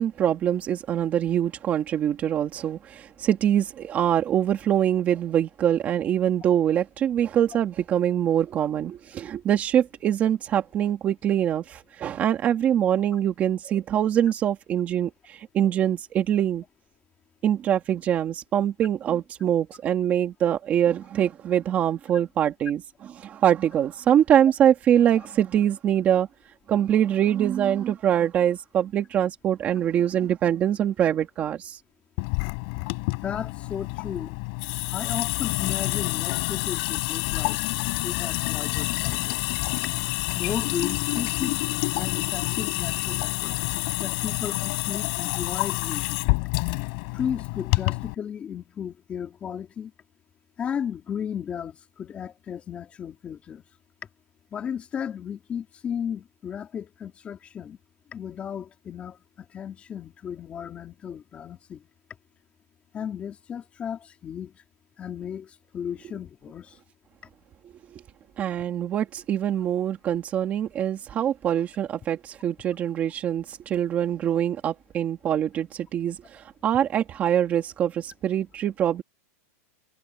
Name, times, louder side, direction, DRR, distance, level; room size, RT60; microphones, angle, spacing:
voice 1, 0.0-16.6 17.4-26.3 26.7-31.8 67.9-68.0 68.4-79.0, right 10 dB, 20° right, 2.5 m, -24 dB
Water tap faucet / Sink (filling or washing) / Drip, 32.2-48.1, left 37 dB, 35° left, 6.5 m, -28 dB
voice 2, 33.2-34.3 34.9-37.6 38.0-39.4 40.3-41.6 42.0-43.6 44.0-46.3 47.1-49.9 50.6-53.6 54.5-57.8 58.1-61.9 62.9-64.6 65.0-66.8, left 8 dB, 15° left, 3.8 m, -34 dB
supercardioid pair, 175°, 8 cm